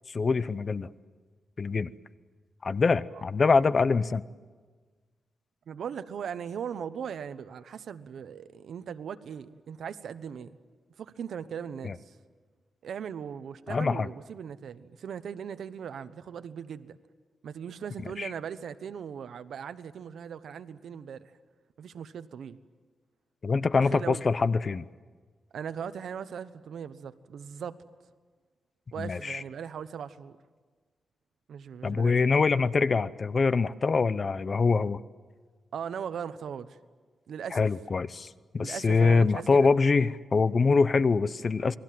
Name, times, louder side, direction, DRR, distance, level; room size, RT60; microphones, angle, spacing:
voice 1, 0.1-0.9 1.6-1.9 2.6-4.2 11.8-11.9 13.7-14.1 18.2-18.3 23.4-24.8 29.0-29.4 31.8-35.0 37.5-41.8, left 4 dB, 40° left, 0.7 m, -24 dB
voice 2, 5.7-10.6 11.0-12.2 12.8-17.0 17.4-21.3 21.8-22.6 23.8-24.2 25.5-27.8 28.9-30.4 31.5-32.2 35.7-36.8 37.3-37.7 38.6-39.7, right 7 dB, 80° right, 1.0 m, -39 dB
28.5 x 21.5 x 7.7 m
wide cardioid pair, 120°, 0 cm